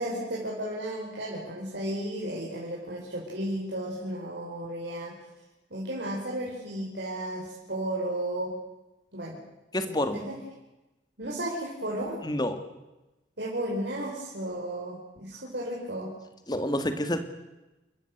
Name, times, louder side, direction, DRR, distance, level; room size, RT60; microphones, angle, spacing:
voice 1, 0.0-5.2 5.7-8.6 9.1-9.4 9.8-10.4 11.2-12.2 13.4-16.1, right 1 dB, 65° right, -4 dB, 5.0 m, -34 dB
voice 2, 9.7-10.2 12.2-12.6 16.5-17.2, left 1 dB, 20° left, 9 dB, 2.0 m, -28 dB
29.0 x 14.5 x 8.0 m, 1.0 s
head